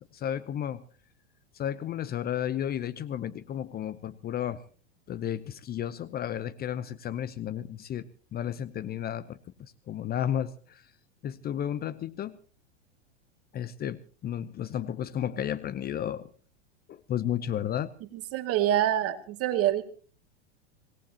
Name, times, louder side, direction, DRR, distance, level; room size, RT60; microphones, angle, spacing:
voice 1, 0.1-0.8 1.5-4.6 5.1-9.4 9.9-10.8 11.2-12.3 13.5-16.3 16.9-17.9, left 10 dB, 25° left, 15 dB, 0.8 m, -33 dB
voice 2, 18.1-19.8, right 12 dB, 40° right, 7 dB, 2.4 m, -26 dB
26.0 x 18.0 x 2.9 m, 0.40 s
hypercardioid pair, 100°, 35 cm